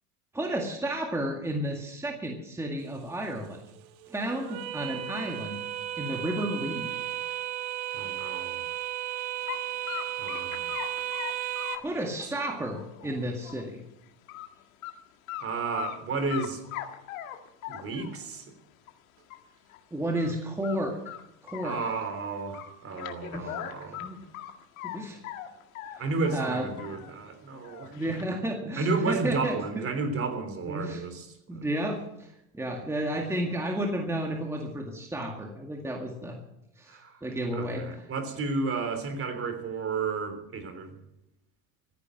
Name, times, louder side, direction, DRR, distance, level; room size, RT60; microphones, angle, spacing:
voice 1, 0.3-3.6 4.1-5.6 6.0-6.9 11.8-13.8 19.9-21.0 21.4-21.8 23.3-23.6 23.9-24.2 24.8-25.2 25.8-26.0 26.3-26.7 27.9-29.6 30.7-31.1 31.5-36.4 36.8-37.8, right 1 dB, 5° right, 1 dB, 2.0 m, -32 dB
sound 1, 2.8-11.8, right 12 dB, 60° right, 1.4 m, -35 dB
voice 2, 7.9-8.6 10.2-10.7 15.4-16.6 17.7-18.5 21.6-24.0 26.0-28.2 28.8-31.3 31.5-31.7 36.9-37.2 37.5-40.9, right 4 dB, 35° right, 8 dB, 3.4 m, -32 dB
sound 2, 9.5-9.6 9.9-13.7 14.0-14.5 14.8-14.9 15.3-16.0 16.3-18.2 18.9-19.0 19.3-19.4 19.7-19.8 20.1-20.4 20.6-22.2 22.5-25.0 25.2-27.1 27.5-28.2, left 13 dB, 80° left, 2.0 m, -40 dB
15.0 x 10.5 x 7.7 m, 0.84 s
supercardioid pair, 115°, 41 cm